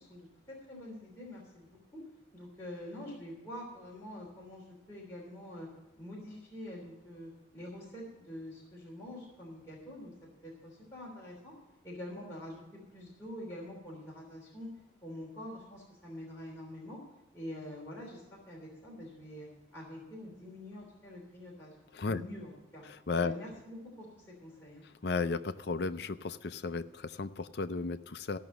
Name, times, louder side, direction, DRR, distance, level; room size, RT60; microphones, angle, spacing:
voice 1, 0.0-2.0 2.3-5.7 6.0-10.1 10.4-11.5 11.8-14.7 15.0-17.0 17.3-21.7 22.0-22.8 23.2-24.8, left 1 dB, 15° left, -6 dB, 3.3 m, -46 dB
voice 2, 22.9-23.3 25.0-28.4, left 4 dB, 55° left, 12 dB, 0.5 m, -34 dB
14.5 x 6.2 x 7.6 m, 1.1 s
head